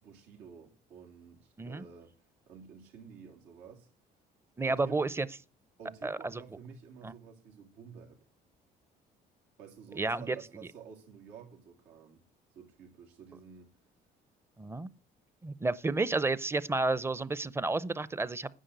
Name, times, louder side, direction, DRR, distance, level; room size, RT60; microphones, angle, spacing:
voice 1, 0.0-3.9 4.7-5.0 5.8-8.2 9.6-12.2 12.5-13.7, right 6 dB, 90° right, 3.2 m, -51 dB
voice 2, 4.6-5.3 6.0-6.4 7.0-7.1 10.0-10.4 14.6-14.9 15.4-18.5, right 3 dB, 15° right, 0.6 m, -31 dB
10.0 x 7.7 x 8.1 m
cardioid pair, 110°, 17 cm